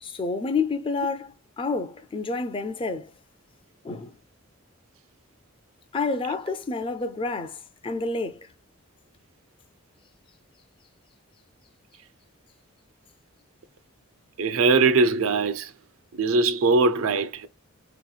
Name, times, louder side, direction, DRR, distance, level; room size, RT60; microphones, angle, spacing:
voice 1, 0.0-3.1 3.8-4.2 5.9-8.5, left 4 dB, 25° left, 0.4 m, -29 dB
voice 2, 14.4-15.7 16.2-17.5, right 3 dB, 80° right, 0.5 m, -21 dB
3.4 x 2.9 x 2.3 m
head